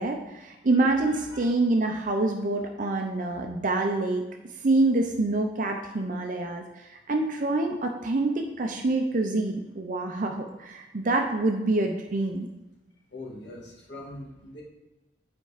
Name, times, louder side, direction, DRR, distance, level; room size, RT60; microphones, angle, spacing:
voice 1, 0.0-4.3 4.6-12.5, right 2 dB, 45° right, 3 dB, 0.6 m, -26 dB
voice 2, 0.7-1.5 13.1-14.6, left 1 dB, 70° left, -2 dB, 1.8 m, -43 dB
8.1 x 4.4 x 4.9 m, 1.1 s
head